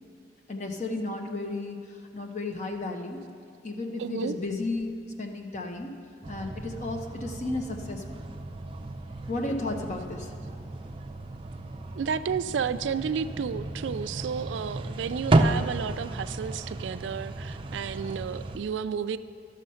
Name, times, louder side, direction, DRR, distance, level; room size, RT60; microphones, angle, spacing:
voice 1, 0.5-1.8 2.1-3.2 3.6-4.9 5.2-5.9 6.3-8.2 9.3-10.3, left 2 dB, 40° left, 3 dB, 0.9 m, -33 dB
voice 2, 4.0-4.4 12.0-19.2, right 7 dB, 90° right, 14 dB, 0.4 m, -32 dB
sound 1, 6.2-18.6, right 2 dB, 30° right, 0.5 m, -32 dB
12.5 x 6.5 x 5.6 m, 2.4 s
head